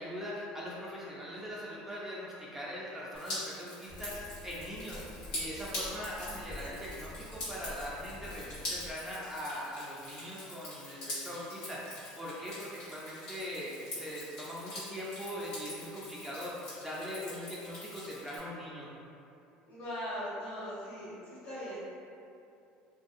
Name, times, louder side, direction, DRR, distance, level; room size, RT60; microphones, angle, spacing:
voice 1, 0.0-5.0 5.3-18.9, equal, 10° right, -7 dB, 0.4 m, -41 dB
Drip, 3.1-18.4, left 1 dB, 90° left, 1.4 m, -44 dB
sound 1, 3.9-8.9, left 1 dB, 30° left, 0.8 m, -48 dB
voice 2, 19.7-21.1 21.4-21.8, equal, 60° left, -9 dB, 1.3 m, -39 dB
2.6 x 2.2 x 2.5 m, 2.6 s
supercardioid pair, 100°, 4 cm